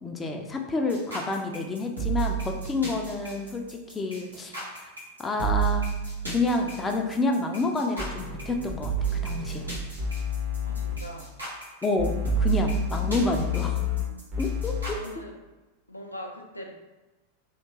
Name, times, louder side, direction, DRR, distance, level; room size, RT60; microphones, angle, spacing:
voice 1, 0.0-4.5 5.2-5.9 6.3-9.7 11.8-13.8 14.4-15.0, left 3 dB, 15° left, 3 dB, 0.4 m, -29 dB
sound 1, 0.9-15.1, right 8 dB, 85° right, 1.3 m, -31 dB
sound 2, 8.0-8.7 9.0-10.9 12.0-14.0 14.3-14.9, left 7 dB, 40° right, 0.9 m, -31 dB
voice 2, 10.6-11.3 14.9-15.4 15.9-16.7, left 1 dB, 85° left, 1 dB, 0.4 m, -41 dB
3.3 x 2.8 x 2.9 m, 1.1 s
figure-of-eight pair, 90°, 0 cm